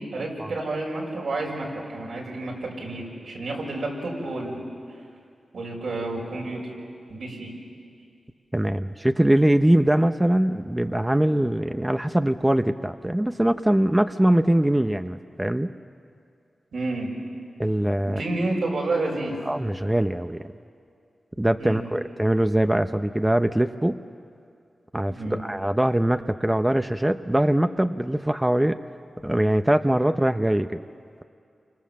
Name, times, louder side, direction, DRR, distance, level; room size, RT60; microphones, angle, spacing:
voice 1, 0.0-4.6 5.5-6.6 7.1-7.5 16.7-17.1 18.1-19.4 21.6-21.8 25.1-25.3, right 2 dB, 85° right, -2 dB, 6.4 m, -30 dB
voice 2, 8.5-15.7 17.6-18.2 19.5-20.4 21.4-24.0 24.9-28.8 29.2-30.8, right 1 dB, 15° right, 8 dB, 0.8 m, -22 dB
29.0 x 25.5 x 7.5 m, 2.4 s
cardioid pair, 50°, 0 cm